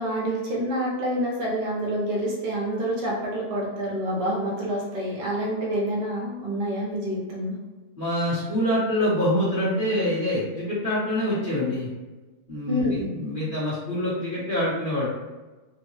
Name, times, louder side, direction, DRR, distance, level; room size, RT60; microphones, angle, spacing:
voice 1, 0.0-7.6 12.7-13.1, equal, 80° right, -4 dB, 1.5 m, -27 dB
voice 2, 8.0-11.9 12.5-15.1, left 1 dB, 35° left, -10 dB, 0.9 m, -25 dB
3.6 x 2.1 x 3.0 m, 1.2 s
omnidirectional pair, 1.9 m